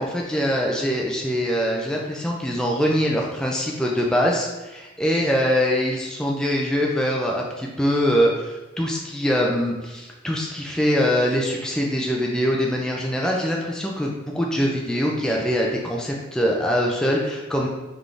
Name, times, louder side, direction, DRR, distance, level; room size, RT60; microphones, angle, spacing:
voice 1, 0.0-17.7, equal, 5° left, -2 dB, 0.4 m, -23 dB
4.0 x 3.5 x 3.3 m, 1.1 s
head